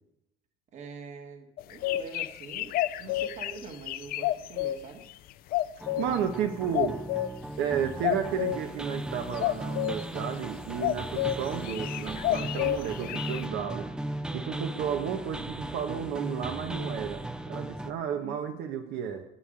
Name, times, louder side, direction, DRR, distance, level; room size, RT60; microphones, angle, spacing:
voice 1, 0.7-2.7 3.0-5.0 18.1-18.6, right 4 dB, 40° right, 5 dB, 1.7 m, -44 dB
sound 1, 1.6-4.8 5.5-6.2 6.7-7.3 8.0-8.6 9.4-10.0 10.8-11.4 11.6-13.4, left 14 dB, 55° left, 0.6 m, -29 dB
sound 2, 5.8-17.9, right 1 dB, 5° right, 0.4 m, -37 dB
voice 2, 5.9-7.0 7.6-13.9 14.3-19.2, right 8 dB, 70° right, 5 dB, 1.2 m, -32 dB
9.5 x 7.6 x 8.9 m, 0.86 s
cardioid pair, 155°, 18 cm